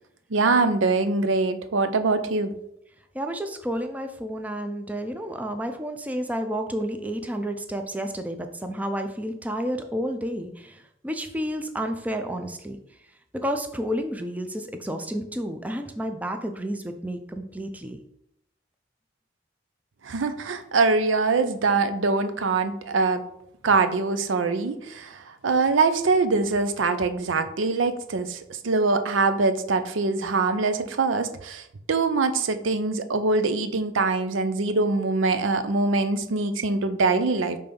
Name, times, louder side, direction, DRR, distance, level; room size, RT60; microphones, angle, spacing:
voice 1, 0.3-2.5 20.0-23.2 23.6-28.4 28.6-31.6 31.9-37.6, right 3 dB, 85° right, 10 dB, 0.6 m, -23 dB
voice 2, 3.1-12.8 13.3-18.0, equal, 10° right, 6 dB, 0.4 m, -31 dB
5.3 x 3.4 x 5.2 m, 0.76 s
head